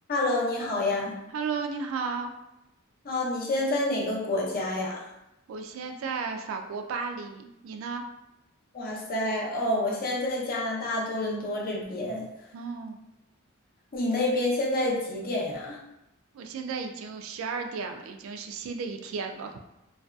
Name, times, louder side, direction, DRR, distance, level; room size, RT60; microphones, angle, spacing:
voice 1, 0.1-1.1 3.0-5.0 8.7-12.2 13.9-15.8, left 1 dB, 45° left, -3 dB, 0.6 m, -28 dB
voice 2, 1.3-2.3 5.5-8.0 12.5-13.0 16.3-19.6, right 5 dB, 75° right, 6 dB, 0.3 m, -34 dB
2.6 x 2.3 x 2.2 m, 0.88 s
head